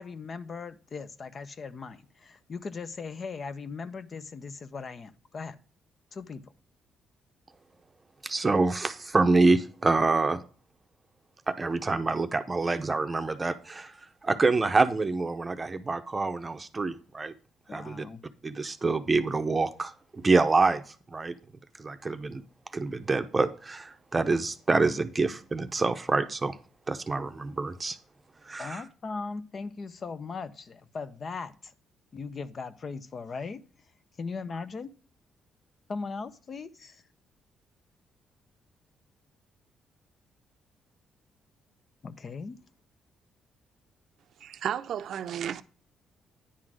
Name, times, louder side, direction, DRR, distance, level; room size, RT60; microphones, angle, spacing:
voice 1, 0.0-5.6 6.1-6.5 17.7-18.2 28.6-31.7 32.1-33.6 34.2-34.9 35.9-37.0 42.0-42.6, left 4 dB, 45° left, 0.7 m, -38 dB
voice 2, 8.2-10.4 11.5-13.9 14.2-17.3 17.7-18.0 18.4-21.3 21.8-22.4 22.7-26.6 26.9-28.0 28.4-28.8, right 3 dB, 25° right, 0.7 m, -26 dB
voice 3, 44.4-45.6, right 9 dB, 70° right, 0.5 m, -33 dB
9.9 x 3.8 x 6.2 m
cardioid pair, 90°, 0 cm